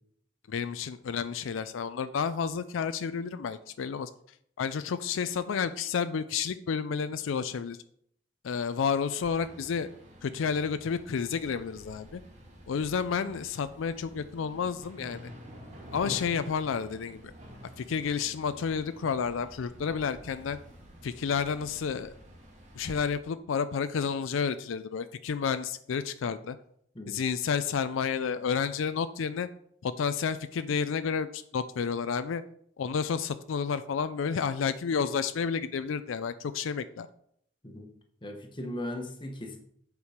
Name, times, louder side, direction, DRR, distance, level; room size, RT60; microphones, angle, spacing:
voice 1, 0.5-4.1 4.6-7.8 8.4-9.9 10.2-12.2 12.7-15.2 15.9-17.3 17.8-20.6 21.0-22.1 22.8-26.6 27.1-29.5 29.8-32.4 32.8-37.1, left 6 dB, 75° left, 12 dB, 0.4 m, -30 dB
sound 1, 9.2-23.0, equal, 35° right, 1.9 m, -49 dB
voice 2, 38.2-39.6, left 1 dB, 25° left, 4 dB, 1.1 m, -38 dB
8.2 x 4.8 x 5.0 m, 0.67 s
head